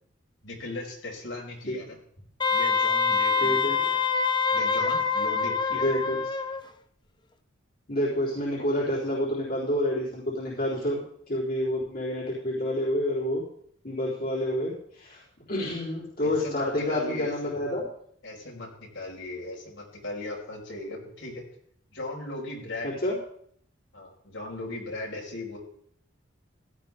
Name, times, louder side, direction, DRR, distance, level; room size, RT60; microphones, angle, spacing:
voice 1, 0.4-2.0 2.5-4.0 4.5-5.9 16.2-17.6 18.2-21.5 21.9-23.1 23.9-25.6, left 2 dB, 70° left, -3 dB, 5.2 m, -38 dB
Wind instrument woodwind instrument, 2.4-6.6, left 5 dB, 20° left, 0.7 m, -25 dB
voice 2, 3.4-3.8 5.7-6.2 7.9-13.4 13.8-15.2 15.5-17.8 22.8-23.2, left 1 dB, 45° left, -7 dB, 4.0 m, -28 dB
16.5 x 12.5 x 3.7 m, 0.64 s
head